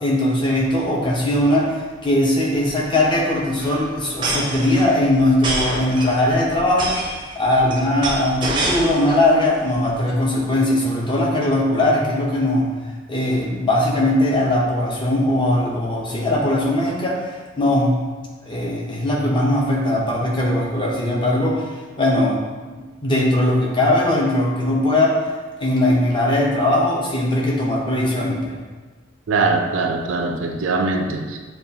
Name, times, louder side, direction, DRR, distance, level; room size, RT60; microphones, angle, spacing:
voice 1, 0.0-1.8 2.0-6.9 7.3-12.7 13.1-17.2 17.6-18.0 18.4-21.6 22.0-22.4 22.7-25.2 25.6-28.5, left 1 dB, 25° left, -3 dB, 0.7 m, -19 dB
sound 1, 0.8-0.9 1.1-1.2 1.4-1.7 2.7-9.3 9.6-10.1, right 2 dB, 25° right, 0.6 m, -27 dB
voice 2, 29.3-31.4, right 3 dB, 70° right, 4 dB, 0.4 m, -21 dB
6.9 x 2.3 x 2.8 m, 1.3 s
head